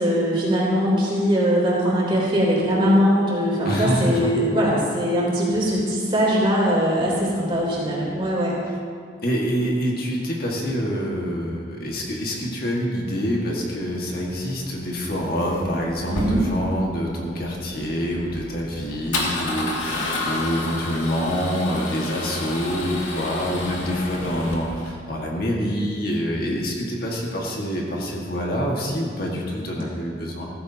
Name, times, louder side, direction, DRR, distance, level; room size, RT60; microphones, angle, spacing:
voice 1, 0.0-8.6 16.0-16.4, equal, 25° right, -5 dB, 3.5 m, -21 dB
voice 2, 3.7-4.3 9.2-30.5, equal, 50° left, -2 dB, 1.8 m, -26 dB
Male speech man speaking / Car / Engine starting, 13.8-24.9, left 2 dB, 90° left, 2.3 m, -31 dB
15.0 x 15.0 x 2.9 m, 2.1 s
head